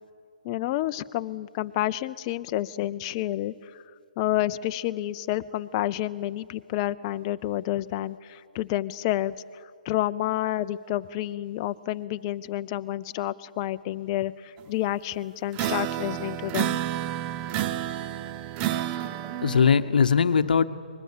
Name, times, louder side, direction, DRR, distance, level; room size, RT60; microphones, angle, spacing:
voice 1, 0.4-3.7 4.2-9.3 9.9-16.8, left 14 dB, 30° left, 0.5 m, -29 dB
sound 1, 15.5-19.8, right 12 dB, 25° right, 0.5 m, -30 dB
voice 2, 18.9-20.7, left 6 dB, 70° left, 0.9 m, -21 dB
23.5 x 20.5 x 7.4 m
hypercardioid pair, 140°, 5 cm